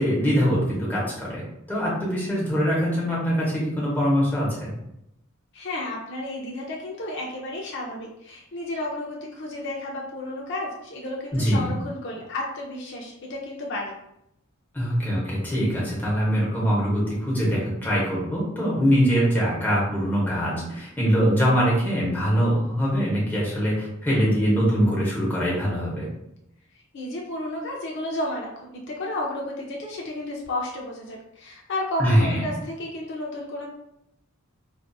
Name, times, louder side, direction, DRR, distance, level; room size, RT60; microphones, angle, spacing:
voice 1, 0.0-1.4 1.7-4.7 11.3-11.7 14.7-26.1 32.0-32.4, equal, 10° left, -6 dB, 0.7 m, -23 dB
voice 2, 5.5-13.9 26.9-33.7, left 1 dB, 55° left, -1 dB, 0.4 m, -32 dB
2.5 x 2.4 x 2.2 m, 0.82 s
head